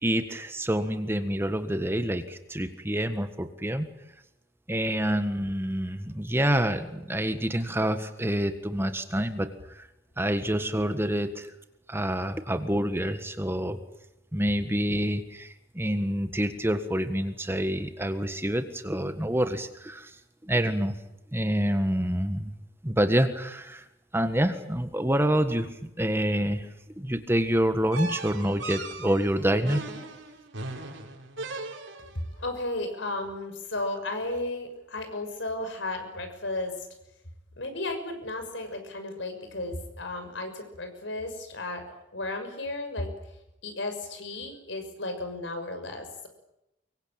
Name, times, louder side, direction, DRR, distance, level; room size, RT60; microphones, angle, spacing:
voice 1, 0.0-3.9 4.7-9.9 10.2-11.5 11.9-13.8 14.3-20.1 20.4-21.0 21.3-22.5 22.8-23.8 24.1-26.7 26.9-29.8, equal, 10° right, 8 dB, 1.6 m, -27 dB
sound 1, 27.9-32.2, right 3 dB, 75° right, 6.0 m, -38 dB
voice 2, 32.3-36.7 37.6-43.1 43.6-46.3, left 2 dB, 65° left, 7 dB, 6.3 m, -34 dB
24.5 x 23.5 x 8.9 m, 0.86 s
head